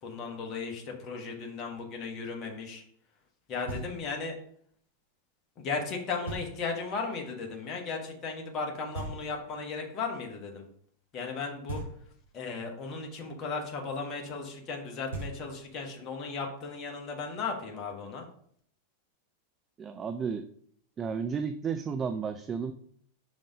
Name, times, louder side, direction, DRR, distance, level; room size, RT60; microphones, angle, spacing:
voice 1, 0.0-2.8 3.5-4.3 5.6-10.6 11.1-11.8 12.3-18.3, left 4 dB, 30° left, 1 dB, 1.2 m, -36 dB
Knock, 3.7-4.3 6.3-6.9 8.9-9.7 11.7-12.4 14.7-14.8 15.1-15.9, right 2 dB, 60° right, 2.5 m, -40 dB
voice 2, 19.8-20.4 21.0-22.7, right 6 dB, 25° right, 9 dB, 0.4 m, -32 dB
5.2 x 3.8 x 5.1 m, 0.63 s
figure-of-eight pair, 90°, 0 cm